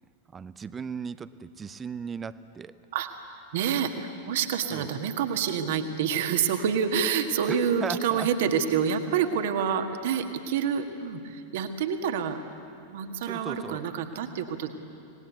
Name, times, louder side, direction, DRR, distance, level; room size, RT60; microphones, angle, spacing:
voice 1, 0.3-2.7 4.7-4.9 7.5-8.3 13.2-13.8 14.1-14.2, right 6 dB, 20° right, 15 dB, 0.7 m, -37 dB
voice 2, 3.5-12.4 12.9-14.7, right 7 dB, 55° right, 7 dB, 1.7 m, -27 dB
26.0 x 19.5 x 8.2 m, 2.6 s
figure-of-eight pair, 90°, 0 cm